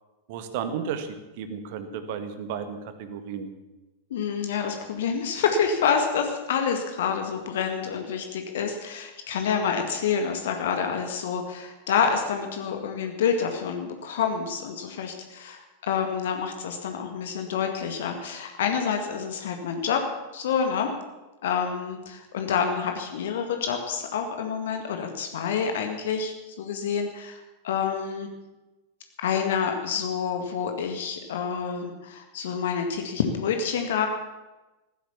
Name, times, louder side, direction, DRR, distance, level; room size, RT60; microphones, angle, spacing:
voice 1, 0.3-3.5, right 7 dB, 50° right, 9 dB, 1.7 m, -33 dB
voice 2, 4.1-20.0 20.3-20.9 21.4-27.4 27.6-28.3 29.2-34.1, left 6 dB, 60° left, 5 dB, 1.9 m, -28 dB
15.0 x 12.5 x 7.2 m, 1.1 s
figure-of-eight pair, 90°, 0 cm